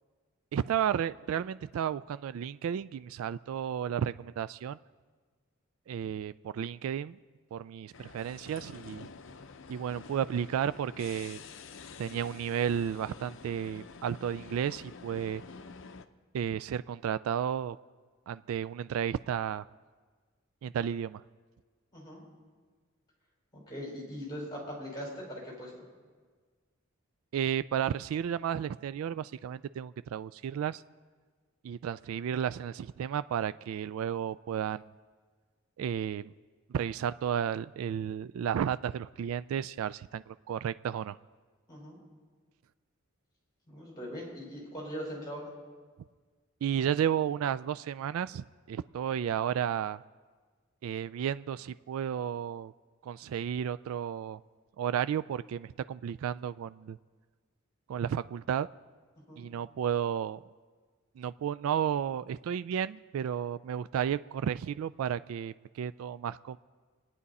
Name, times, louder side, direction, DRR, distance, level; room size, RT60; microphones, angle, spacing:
voice 1, 0.5-4.8 5.9-7.2 7.5-9.1 9.7-11.4 12.0-15.4 16.3-17.8 18.3-19.6 20.6-21.2 27.3-30.8 31.6-34.9 35.8-36.3 36.7-41.2 46.6-50.0 50.8-52.7 53.0-54.4 54.8-57.0 57.9-58.7 59.4-60.4 61.2-66.6, right 8 dB, 85° right, 15 dB, 0.3 m, -33 dB
sound 1, 7.9-16.0, left 5 dB, 65° left, 0.6 m, -48 dB
voice 2, 23.5-25.7 41.7-42.0 43.7-45.4 59.3-59.4, equal, 20° left, -3 dB, 5.2 m, -40 dB
25.0 x 9.9 x 4.2 m, 1.5 s
head